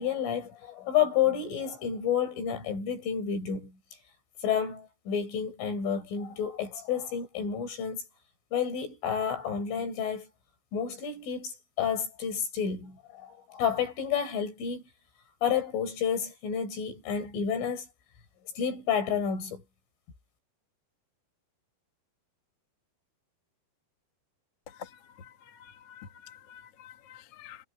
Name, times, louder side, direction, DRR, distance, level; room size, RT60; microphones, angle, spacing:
voice 1, 0.0-3.8 4.4-8.0 8.5-10.3 10.7-14.8 15.4-17.9 18.6-19.6, left 8 dB, 80° left, 8.7 m, -30 dB
voice 2, 24.8-27.6, left 8 dB, 50° left, 2.0 m, -49 dB
omnidirectional pair, 5.5 m